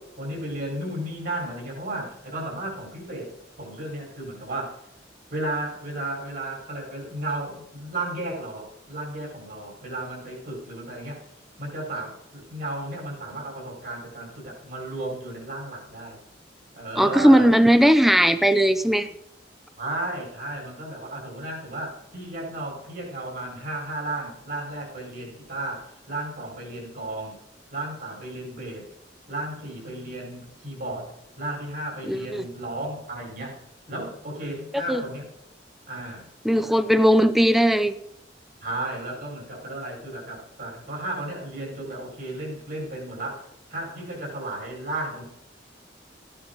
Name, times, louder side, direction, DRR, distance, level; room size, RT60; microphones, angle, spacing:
voice 1, 0.2-3.3 3.6-4.8 5.3-11.2 11.6-16.2 16.7-17.5 19.8-27.3 27.7-28.9 29.3-33.6 33.9-35.3 35.9-36.3 38.6-43.4 43.7-45.2, right 1 dB, 60° right, 0 dB, 5.0 m, -34 dB
voice 2, 17.0-19.1 32.1-32.5 34.9-35.0 36.4-37.9, equal, ahead, 11 dB, 0.5 m, -18 dB
14.0 x 9.8 x 3.9 m, 0.81 s
head